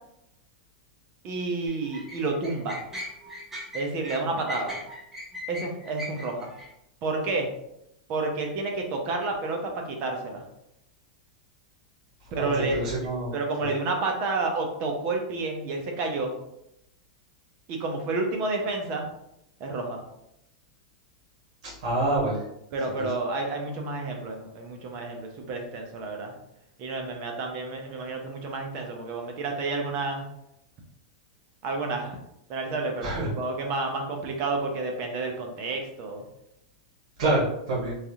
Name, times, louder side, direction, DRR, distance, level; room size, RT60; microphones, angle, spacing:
voice 1, 1.2-2.8 3.7-4.8 5.5-6.5 7.0-7.5 8.1-10.4 12.3-16.3 17.7-19.1 19.6-20.0 22.7-26.3 26.8-30.2 31.6-32.2 32.5-36.2, right 3 dB, 45° right, 2 dB, 0.7 m, -30 dB
sound 1, 1.7-6.7, left 1 dB, 10° right, 0.8 m, -38 dB
voice 2, 12.3-13.3 13.6-13.7 21.8-22.4 23.0-23.1 33.0-33.3 37.2-38.0, right 2 dB, 70° right, -5 dB, 1.3 m, -26 dB
3.2 x 2.4 x 2.8 m, 0.81 s
hypercardioid pair, 125°, 4 cm